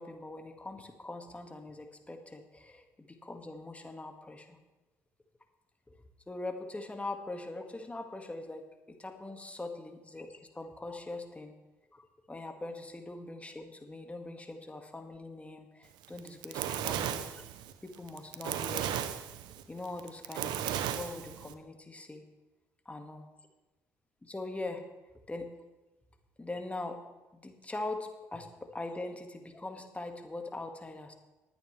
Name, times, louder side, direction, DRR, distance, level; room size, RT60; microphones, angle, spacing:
voice 1, 0.0-4.6 6.3-11.5 11.9-17.4 17.8-19.0 19.7-22.2 22.9-23.2 24.2-24.8 25.3-25.5 26.4-27.0 27.3-31.1, left 2 dB, 15° left, 5 dB, 1.9 m, -42 dB
Fire, 16.0-21.5, right 10 dB, 65° right, 0.7 m, -35 dB
20.0 x 9.3 x 3.3 m, 1.1 s
hypercardioid pair, 50°, 8 cm